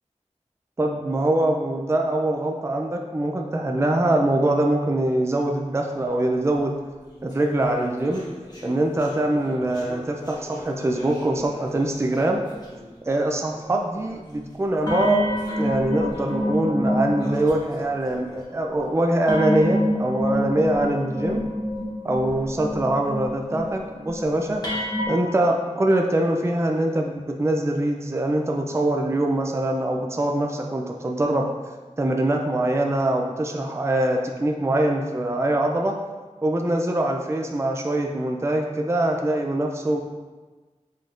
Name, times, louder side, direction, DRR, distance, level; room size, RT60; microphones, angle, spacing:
voice 1, 0.8-6.7 7.2-8.2 8.6-12.4 13.1-15.3 15.6-21.4 22.0-24.6 25.1-31.5 32.0-35.9 36.4-40.0, right 1 dB, 20° right, 2 dB, 0.4 m, -23 dB
sound 1, 7.1-12.3 12.6-12.9 13.5-14.1 14.9-18.4 19.3-25.1, left 1 dB, 35° left, 1.2 m, -29 dB
5.5 x 3.4 x 2.5 m, 1.3 s
wide cardioid pair, 55°, 12 cm